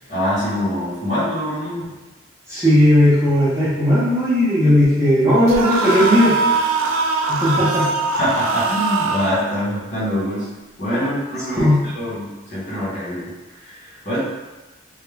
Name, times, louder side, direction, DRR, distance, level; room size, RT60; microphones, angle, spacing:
voice 1, 0.1-1.9 8.2-10.5 10.8-14.2, equal, 35° left, -9 dB, 0.9 m, -24 dB
voice 2, 2.5-6.3 7.3-7.9 11.6-11.8, left 1 dB, 15° right, -10 dB, 0.6 m, -16 dB
sound 1, 5.5-9.5, right 3 dB, 85° right, 0.3 m, -21 dB
2.3 x 2.1 x 3.1 m, 1.1 s
head